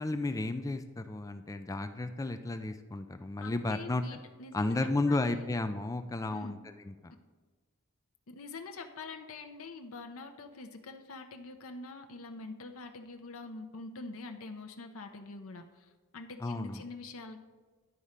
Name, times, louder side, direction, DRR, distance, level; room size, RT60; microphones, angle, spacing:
voice 1, 0.0-4.2 4.5-7.1 16.4-16.8, left 2 dB, 15° left, 9 dB, 0.3 m, -33 dB
voice 2, 3.4-5.5 6.3-6.6 8.3-17.4, left 3 dB, 80° left, 5 dB, 0.7 m, -45 dB
11.0 x 4.2 x 5.0 m, 1.4 s
head